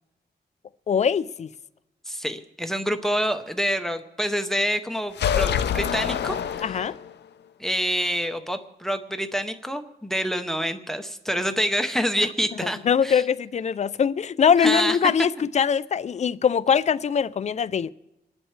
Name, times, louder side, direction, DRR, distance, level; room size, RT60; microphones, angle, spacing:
voice 1, 0.9-1.5 6.6-6.9 12.8-17.9, left 7 dB, 40° left, 0.4 m, -22 dB
voice 2, 2.1-6.8 7.6-13.2 14.6-15.1, equal, ahead, 0.8 m, -27 dB
sound 1, 5.1-7.2, left 8 dB, 80° left, 0.6 m, -26 dB
28.0 x 11.0 x 3.3 m
wide cardioid pair, 165°, 17 cm